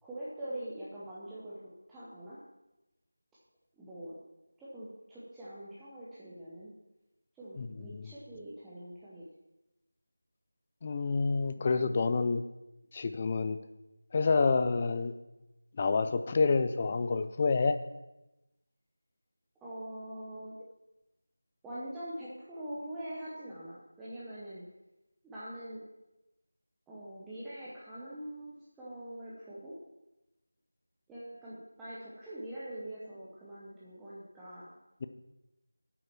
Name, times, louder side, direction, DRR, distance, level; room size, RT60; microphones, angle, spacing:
voice 1, 0.0-1.6 1.9-2.4 3.8-4.1 4.6-6.7 7.3-9.2 11.5-11.7 19.6-20.6 21.6-24.6 25.2-25.8 26.9-29.8 31.1-34.7, right 1 dB, 5° right, -11 dB, 0.8 m, -43 dB
voice 2, 7.6-8.1 10.8-12.4 12.9-13.6 14.1-15.1 15.8-17.8 35.0-35.1, left 4 dB, 20° left, 10 dB, 0.4 m, -28 dB
9.5 x 7.9 x 5.9 m, 0.97 s
figure-of-eight pair, 175°, 0 cm